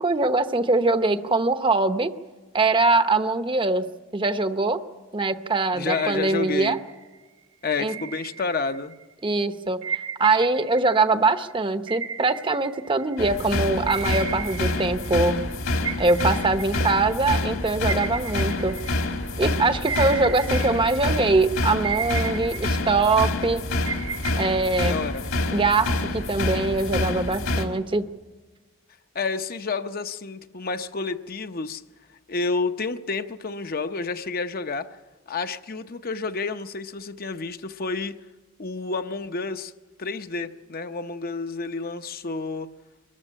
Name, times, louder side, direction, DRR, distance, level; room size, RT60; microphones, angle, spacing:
voice 1, 0.0-2.1 2.5-3.9 4.1-4.8 5.1-6.8 7.8-7.9 9.2-9.8 10.2-15.3 16.0-18.8 19.4-23.6 24.4-25.0 25.5-28.1, right 3 dB, 25° right, 10 dB, 0.8 m, -22 dB
voice 2, 5.7-6.8 7.6-8.9 24.9-25.2 29.1-31.8 32.3-35.0 35.3-38.1 38.6-39.7 40.0-42.7, left 4 dB, 45° left, 9 dB, 0.7 m, -30 dB
sound 1, 5.9-7.2 7.9-9.0 9.8-13.4 13.9-15.5 15.8-19.4 19.9-21.4 21.8-23.4 23.8-25.5, right 6 dB, 65° right, 1.5 m, -35 dB
sound 2, 13.2-27.6, left 2 dB, 65° left, 2.1 m, -27 dB
23.5 x 14.0 x 9.9 m, 1.3 s
head